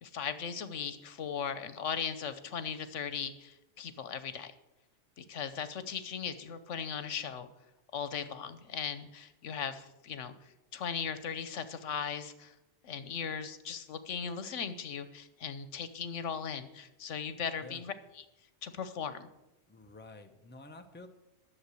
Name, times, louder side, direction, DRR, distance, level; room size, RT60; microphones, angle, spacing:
voice 1, 0.0-4.5 5.2-7.5 7.9-12.5 12.8-18.2 18.6-19.3, left 7 dB, 80° left, 12 dB, 1.2 m, -38 dB
voice 2, 19.7-21.1, left 2 dB, 10° left, 5 dB, 0.8 m, -50 dB
11.5 x 7.1 x 8.3 m, 0.92 s
omnidirectional pair, 1.2 m